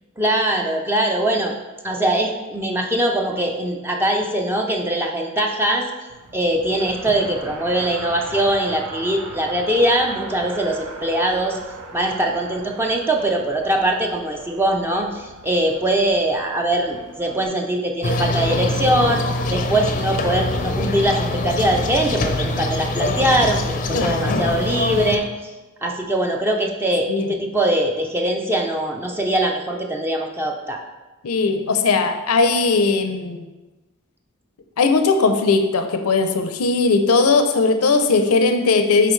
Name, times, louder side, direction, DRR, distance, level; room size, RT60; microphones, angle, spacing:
voice 1, 0.2-1.5 1.8-5.9 6.3-11.6 11.9-19.2 19.5-25.5 25.8-30.8, right 1 dB, 10° right, 1 dB, 0.5 m, -22 dB
Race car auto racing, 6.1-17.4, right 3 dB, 85° right, 0.8 m, -39 dB
sound 1, 18.0-25.2, left 2 dB, 35° left, 0.5 m, -24 dB
voice 2, 23.9-24.4 27.1-27.3 31.2-33.4 34.8-39.1, left 4 dB, 80° left, 6 dB, 0.6 m, -18 dB
10.0 x 4.0 x 3.2 m, 1.1 s
head